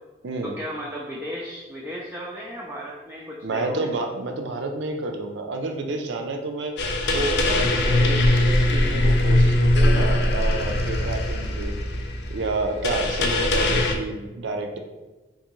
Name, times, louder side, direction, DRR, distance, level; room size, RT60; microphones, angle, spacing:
voice 1, 0.4-3.9, equal, 10° right, -5 dB, 0.3 m, -35 dB
voice 2, 3.4-6.7 7.1-11.8 12.3-14.8, right 2 dB, 80° right, 5 dB, 0.4 m, -29 dB
sound 1, 6.8-14.0, left 1 dB, 65° left, 0.4 m, -21 dB
3.5 x 2.6 x 3.0 m, 1.2 s
head